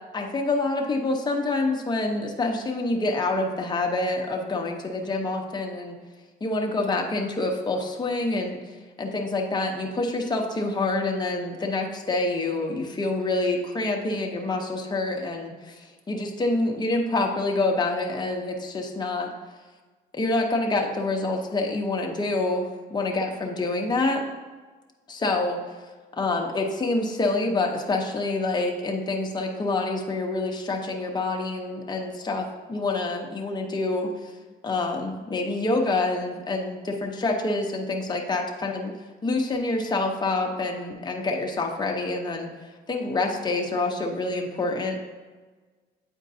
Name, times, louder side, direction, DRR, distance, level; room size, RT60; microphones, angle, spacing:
voice 1, 0.1-6.0 6.4-19.3 20.1-24.2 25.1-25.6 26.1-34.3 34.6-38.9 39.2-42.5 42.9-45.0, left 2 dB, 20° left, 1 dB, 0.8 m, -27 dB
8.3 x 4.4 x 2.7 m, 1.3 s
cardioid pair, 90°, 20 cm